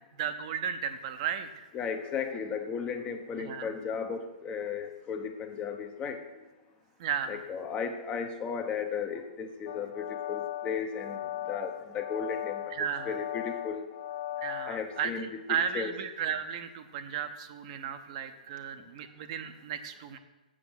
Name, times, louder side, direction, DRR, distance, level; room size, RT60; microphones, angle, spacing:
voice 1, 0.2-1.7 3.4-3.7 7.0-7.4 12.7-13.2 14.4-20.2, right 8 dB, 45° right, 8 dB, 0.7 m, -34 dB
voice 2, 1.7-6.2 7.3-13.8 14.4-15.9, left 6 dB, 25° left, 7 dB, 0.8 m, -35 dB
sound 1, 9.7-15.1, left 12 dB, 40° left, 0.4 m, -38 dB
7.6 x 7.5 x 6.0 m, 1.1 s
hypercardioid pair, 125°, 5 cm